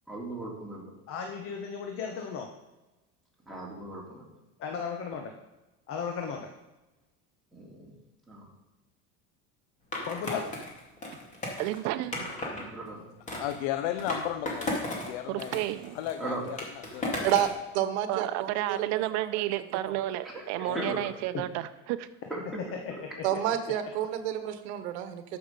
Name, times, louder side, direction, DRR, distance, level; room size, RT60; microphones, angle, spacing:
voice 1, 0.1-0.9 3.5-4.2 7.5-7.9 8.3-8.5 12.5-13.0 16.2-16.4 20.2-21.0 22.3-22.6, right 1 dB, ahead, -3 dB, 3.0 m, -38 dB
voice 2, 1.1-2.5 4.6-5.3 5.9-6.5 10.1-10.4 21.3-21.4 23.0-23.2, left 6 dB, 45° left, 3 dB, 1.2 m, -35 dB
Skateboard, 9.9-12.6 13.3-15.1 15.4-17.6, left 1 dB, 25° left, 2.5 m, -35 dB
voice 3, 11.6-12.4 15.3-16.0 18.1-22.1, right 15 dB, 60° right, 10 dB, 0.7 m, -31 dB
voice 4, 13.4-15.6 15.9-17.3 20.7-20.9, left 12 dB, 85° left, 9 dB, 0.7 m, -35 dB
voice 5, 17.7-18.8 19.2-19.6 23.2-25.2, right 11 dB, 90° right, 9 dB, 1.1 m, -29 dB
13.0 x 6.1 x 5.2 m, 1.1 s
cardioid pair, 140°, 32 cm